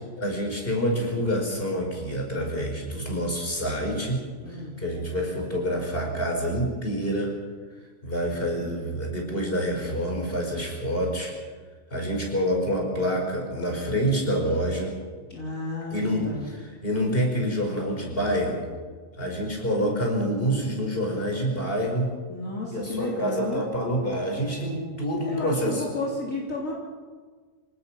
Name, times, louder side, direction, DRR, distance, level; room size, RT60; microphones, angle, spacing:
voice 1, 0.2-4.2 4.5-7.4 8.0-11.3 11.9-14.9 15.9-18.7 19.2-22.1 22.7-25.8, equal, 45° left, 1 dB, 5.4 m, -27 dB
voice 2, 4.4-4.8 15.3-16.5 22.3-23.6 25.3-26.7, left 2 dB, 75° left, -4 dB, 4.0 m, -32 dB
26.5 x 18.0 x 6.0 m, 1.5 s
omnidirectional pair, 1.4 m